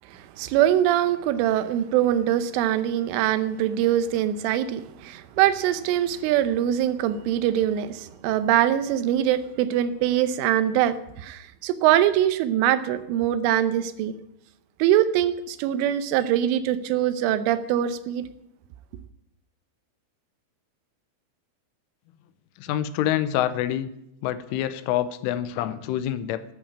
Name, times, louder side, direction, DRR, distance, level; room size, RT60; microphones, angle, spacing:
voice 1, 0.1-14.2 14.8-18.3, right 11 dB, 85° right, 12 dB, 3.3 m, -23 dB
voice 2, 22.6-23.9 24.2-26.4, left 12 dB, 85° left, 13 dB, 3.2 m, -26 dB
11.5 x 8.8 x 8.7 m, 0.83 s
omnidirectional pair, 5.6 m